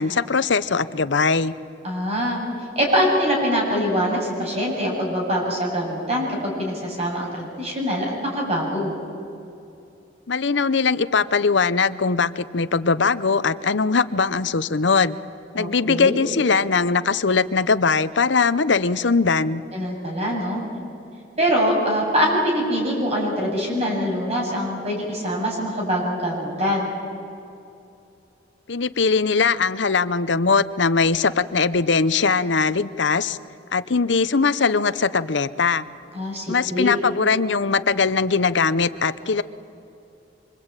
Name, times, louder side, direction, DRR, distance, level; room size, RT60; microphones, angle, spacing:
voice 1, 0.0-1.5 10.3-15.2 15.5-19.6 28.7-33.4 33.7-35.9 36.5-39.4, left 4 dB, 70° left, 14 dB, 0.8 m, -20 dB
voice 2, 1.8-2.4 2.8-8.9 15.6-16.2 19.7-20.6 21.4-26.9 36.1-37.0, equal, 35° right, -1 dB, 7.7 m, -23 dB
25.5 x 25.5 x 9.0 m, 2.6 s
head